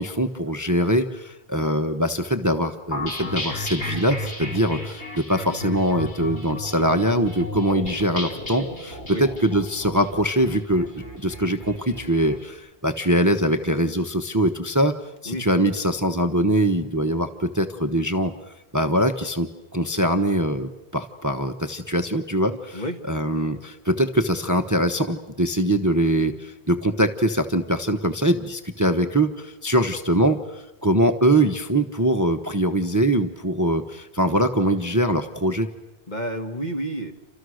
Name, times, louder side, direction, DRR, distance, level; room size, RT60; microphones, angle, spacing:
voice 1, 0.0-14.9 15.2-18.3 18.7-35.7, right 1 dB, 15° right, 6 dB, 1.0 m, -23 dB
sound 1, 2.9-12.4, left 1 dB, 85° left, 5.0 m, -34 dB
voice 2, 36.1-37.1, right 1 dB, 40° left, 4 dB, 2.2 m, -30 dB
29.5 x 26.0 x 6.5 m, 0.95 s
omnidirectional pair, 1.1 m